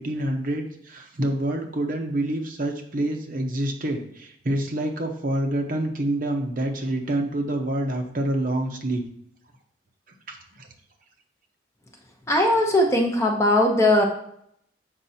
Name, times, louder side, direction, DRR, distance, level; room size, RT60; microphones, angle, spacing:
voice 1, 0.0-9.0 10.3-10.7, right 1 dB, 45° right, 3 dB, 0.8 m, -27 dB
voice 2, 12.3-14.0, left 1 dB, 15° left, 1 dB, 0.7 m, -19 dB
7.2 x 5.2 x 2.7 m, 0.69 s
head